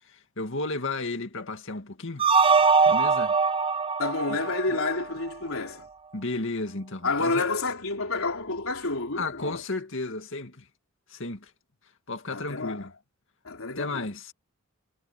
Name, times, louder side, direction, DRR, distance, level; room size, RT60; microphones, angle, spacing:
voice 1, 0.0-2.3 2.9-3.4 4.3-4.4 4.7-4.8 6.1-7.4 9.2-10.7 11.1-11.5 12.1-12.9 13.8-14.3, left 2 dB, 60° left, 2.3 m, -33 dB
sound 1, 2.2-5.3, right 5 dB, 25° right, 0.7 m, -22 dB
voice 2, 4.0-5.9 7.0-9.6 12.3-12.9 13.4-14.0, left 3 dB, 80° left, 3.4 m, -29 dB
head